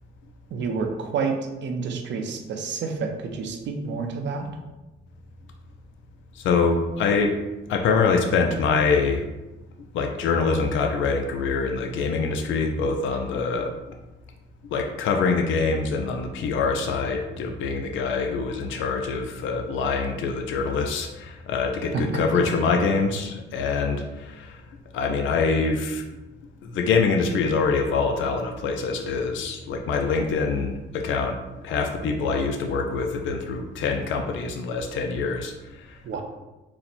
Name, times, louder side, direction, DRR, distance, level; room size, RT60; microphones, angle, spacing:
voice 1, 0.5-1.4 1.6-4.5 21.9-22.2 36.0-36.2, right 5 dB, 65° right, 3 dB, 0.7 m, -29 dB
voice 2, 6.3-7.3 7.7-9.2 9.9-14.0 14.7-24.6 24.9-26.0 26.6-36.2, left 4 dB, 75° left, 3 dB, 0.5 m, -25 dB
4.2 x 2.1 x 4.1 m, 1.1 s
cardioid pair, 90°, 20 cm